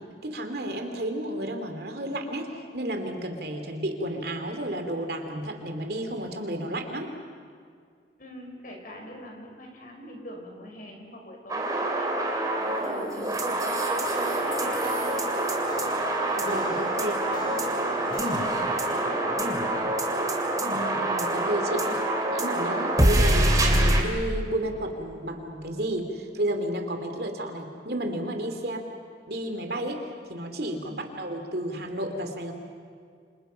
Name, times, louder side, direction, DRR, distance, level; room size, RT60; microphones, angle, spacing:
voice 1, 0.2-7.1 16.3-17.4 20.6-22.0 22.3-28.8 29.3-30.0 30.3-32.5, right 1 dB, 60° right, 5 dB, 2.9 m, -32 dB
voice 2, 8.2-15.8 17.2-19.6 21.8-22.1 22.7-22.9 30.9-31.0, equal, 50° left, 1 dB, 5.5 m, -44 dB
sound 1, 11.5-24.0, right 1 dB, 20° right, 3.0 m, -25 dB
sound 2, 13.2-22.5, equal, 25° left, 2.8 m, -42 dB
28.5 x 27.0 x 5.8 m, 2.2 s
head